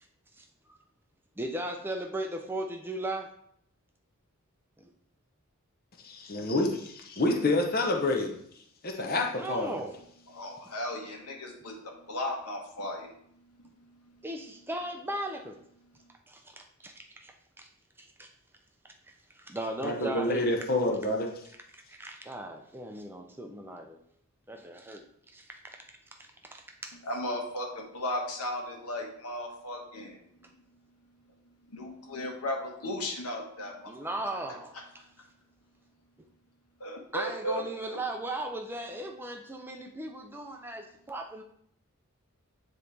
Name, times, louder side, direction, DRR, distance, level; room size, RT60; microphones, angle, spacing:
voice 1, 0.4-0.8 1.4-3.3 4.8-4.9 9.3-9.9 14.2-15.6 16.3-16.4 16.8-17.7 18.2-18.3 19.1-20.5 21.7-24.0 24.5-25.0 25.3-25.8 26.8-26.9 33.9-34.8 37.1-41.4, right 1 dB, 10° right, 3 dB, 0.4 m, -37 dB
voice 2, 6.3-8.4 8.8-9.7 19.8-21.3, left 2 dB, 40° left, 2 dB, 0.8 m, -28 dB
voice 3, 10.3-14.3 16.0-16.1 27.0-30.3 31.3-34.1 36.8-38.0, left 1 dB, 90° left, 1 dB, 1.3 m, -36 dB
9.3 x 3.1 x 3.4 m, 0.69 s
head